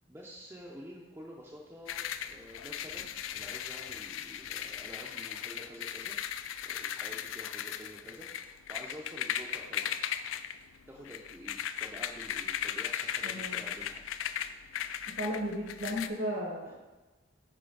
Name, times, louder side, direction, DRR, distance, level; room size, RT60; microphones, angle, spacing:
voice 1, 0.1-6.2 6.6-9.9 10.9-14.0, equal, 15° right, -4 dB, 0.6 m, -49 dB
sound 1, 1.9-16.1, left 9 dB, 90° left, 0.3 m, -37 dB
voice 2, 13.2-13.6 15.1-16.7, equal, 60° right, -4 dB, 1.1 m, -35 dB
6.7 x 5.0 x 3.9 m, 1.2 s
head